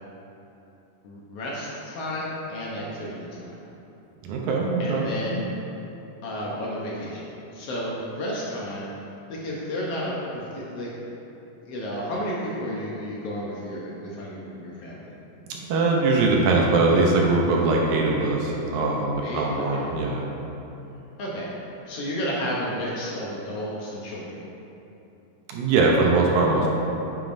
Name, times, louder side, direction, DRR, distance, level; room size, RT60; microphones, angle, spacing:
voice 1, 1.0-3.5 4.8-5.5 6.2-8.9 9.3-10.9 11.6-15.1 19.2-19.5 19.7-19.8 21.2-21.5 21.9-24.4, equal, 75° left, -4 dB, 1.4 m, -32 dB
voice 2, 4.2-5.1 15.6-20.2 25.5-26.7, right 3 dB, 75° right, -1 dB, 2.1 m, -21 dB
9.2 x 7.0 x 2.6 m, 3.0 s
omnidirectional pair, 3.8 m